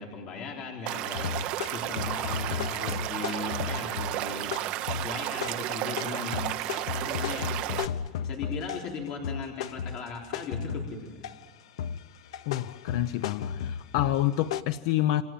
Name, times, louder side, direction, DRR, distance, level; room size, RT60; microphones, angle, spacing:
voice 1, 0.0-1.4 1.7-4.5 4.9-7.5 8.2-11.3, left 4 dB, 30° left, 3.7 m, -38 dB
Stream / Liquid, 0.9-7.9, right 15 dB, 35° right, 1.1 m, -33 dB
sound 1, 1.2-9.0 9.2-11.5 11.8-14.6, left 8 dB, 90° left, 1.1 m, -34 dB
voice 2, 12.5-15.2, left 14 dB, 55° left, 0.8 m, -28 dB
28.5 x 25.5 x 7.5 m
supercardioid pair, 175°, 3 cm